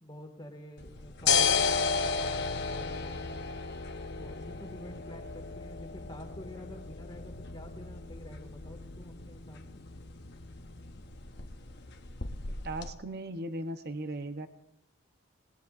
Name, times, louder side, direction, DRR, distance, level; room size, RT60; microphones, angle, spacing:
voice 1, 0.0-3.4 4.2-9.8, left 1 dB, 20° left, 3 dB, 1.9 m, -48 dB
sound 1, 0.8-12.9, left 5 dB, 50° left, 1.0 m, -34 dB
voice 2, 12.6-14.5, right 1 dB, 50° right, 8 dB, 0.8 m, -37 dB
28.5 x 19.5 x 2.5 m, 0.79 s
head